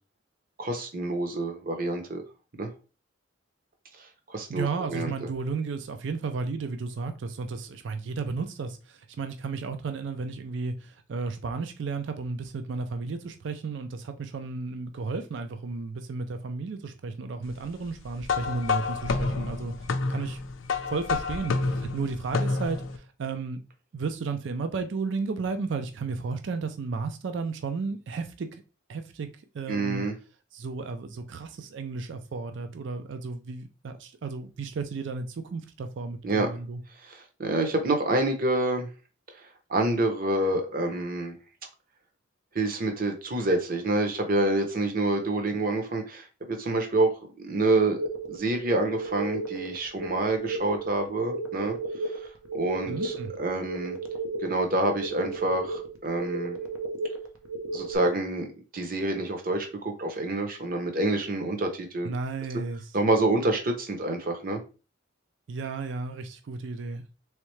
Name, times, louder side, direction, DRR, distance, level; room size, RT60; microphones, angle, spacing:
voice 1, 0.6-2.2 2.6-2.7 4.3-5.1 29.7-30.1 36.2-36.5 37.0-38.9 39.7-41.4 42.5-47.1 47.4-48.0 48.3-51.7 52.1-52.3 52.5-54.0 54.4-56.6 57.7-58.5 58.7-62.1 62.9-64.6, right 2 dB, 45° right, 0.8 m, -27 dB
voice 2, 4.5-19.7 20.1-20.4 20.9-23.6 23.9-28.6 28.9-29.3 29.5-30.0 30.5-36.8 52.9-53.3 62.0-63.0 65.5-67.2, right 4 dB, 65° right, 0.4 m, -33 dB
sound 1, 18.2-23.0, left 4 dB, 75° left, 0.5 m, -29 dB
sound 2, 48.0-58.0, right 3 dB, 90° right, 0.8 m, -34 dB
3.6 x 3.2 x 3.1 m
head